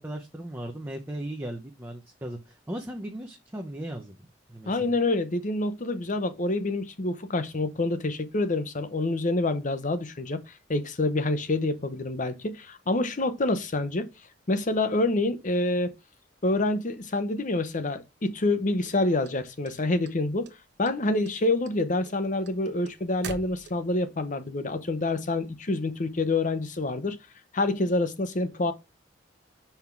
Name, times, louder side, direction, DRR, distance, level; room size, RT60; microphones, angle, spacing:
voice 1, 0.0-4.9, right 1 dB, 10° right, 0.8 m, -37 dB
voice 2, 4.7-10.4 10.7-14.1 14.5-15.9 16.4-20.5 20.8-27.2 27.5-28.7, left 2 dB, 45° left, 0.8 m, -27 dB
sound 1, 18.8-20.1 20.4-21.0 21.2-24.1, right 4 dB, 65° right, 1.0 m, -42 dB
5.7 x 3.6 x 5.9 m
head